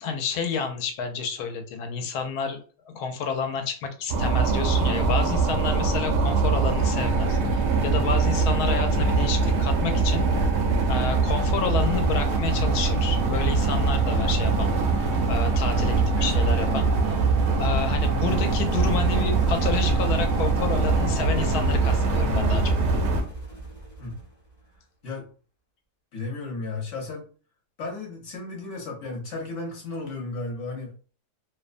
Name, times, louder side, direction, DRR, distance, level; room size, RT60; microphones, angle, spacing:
voice 1, 0.0-2.6 2.9-10.2 10.9-14.7 15.3-17.2 17.6-22.8, left 5 dB, 85° left, 6 dB, 1.1 m, -30 dB
sound 1, 4.1-23.2, right 4 dB, 70° right, 0.6 m, -23 dB
sound 2, 18.3-24.8, equal, 20° left, 0.5 m, -42 dB
voice 2, 26.1-27.3 27.8-30.9, left 3 dB, 60° left, 0 dB, 1.0 m, -34 dB
2.7 x 2.1 x 2.4 m, 0.39 s
omnidirectional pair, 1.6 m